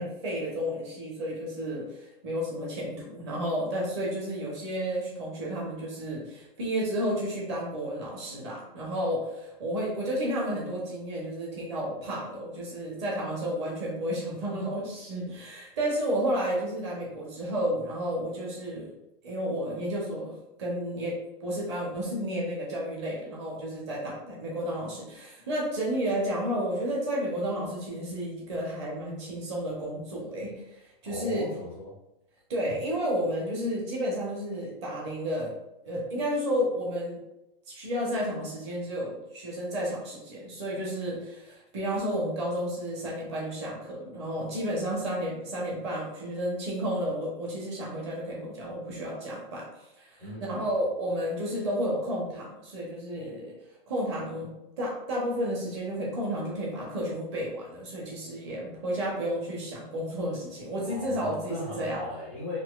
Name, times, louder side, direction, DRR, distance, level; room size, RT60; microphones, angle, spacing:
voice 1, 0.0-18.9 19.2-20.3 20.6-31.5 32.5-35.5 35.8-37.2 37.7-49.7 50.0-53.5 53.9-54.5 54.8-62.0, equal, 25° right, -3 dB, 0.8 m, -32 dB
voice 2, 31.1-31.9 50.2-50.6 60.9-62.6, left 2 dB, 15° left, -7 dB, 0.3 m, -37 dB
4.1 x 2.7 x 2.3 m, 0.92 s
hypercardioid pair, 175°, 30 cm